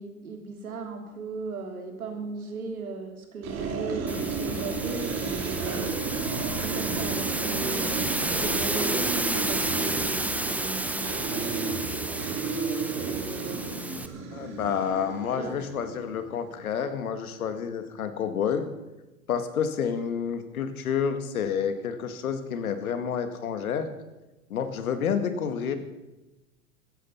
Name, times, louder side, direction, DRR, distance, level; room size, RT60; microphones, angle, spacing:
voice 1, 0.0-6.2 6.6-11.4 11.8-12.2 13.0-14.0 15.4-15.6, right 3 dB, 85° right, 4 dB, 3.1 m, -37 dB
sound 1, 3.4-16.3, right 4 dB, 35° right, 3.6 m, -32 dB
sound 2, 4.1-14.1, right 1 dB, 5° right, 0.9 m, -32 dB
voice 2, 14.3-18.7 19.3-23.9 24.5-25.8, left 7 dB, 80° left, 9 dB, 2.0 m, -29 dB
15.5 x 13.5 x 5.7 m, 1.1 s
hypercardioid pair, 95°, 42 cm